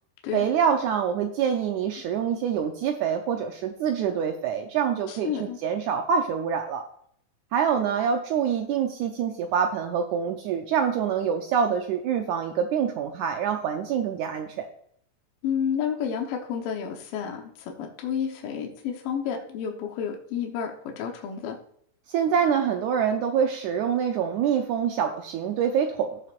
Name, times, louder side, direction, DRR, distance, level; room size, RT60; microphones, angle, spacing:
voice 1, 0.3-6.8 7.5-14.7 22.1-26.2, right 7 dB, 85° right, 5 dB, 1.7 m, -25 dB
voice 2, 5.1-5.6 15.4-21.6, left 8 dB, 75° left, 2 dB, 2.7 m, -30 dB
15.5 x 6.6 x 2.5 m, 0.67 s
omnidirectional pair, 4.2 m